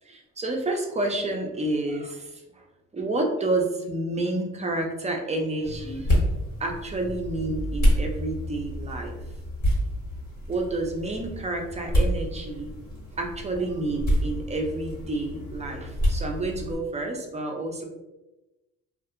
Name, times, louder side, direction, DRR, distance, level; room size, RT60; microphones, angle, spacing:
voice 1, 0.0-2.6 2.9-6.2 6.6-9.2 10.5-12.7 13.2-17.8, right 2 dB, 20° right, 2 dB, 0.5 m, -29 dB
sound 1, 5.6-16.7, equal, 65° left, 1.3 m, -28 dB
2.6 x 2.4 x 2.5 m, 1.0 s
cardioid pair, 85°, 32 cm